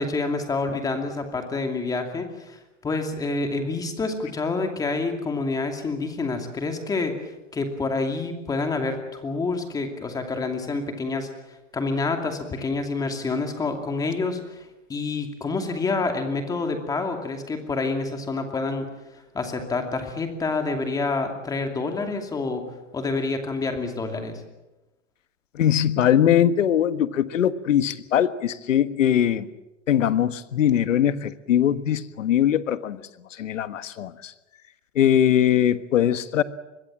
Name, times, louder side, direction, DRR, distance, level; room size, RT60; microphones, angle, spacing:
voice 1, 0.0-7.1 7.5-11.3 11.7-14.6 14.9-18.9 19.3-22.6 22.9-24.4, left 3 dB, 10° left, 5 dB, 2.6 m, -27 dB
voice 2, 25.5-29.5 29.9-33.0 33.4-34.3 34.9-36.4, left 10 dB, 75° left, 13 dB, 1.6 m, -21 dB
26.0 x 22.0 x 7.5 m, 1.0 s
hypercardioid pair, 155°, 38 cm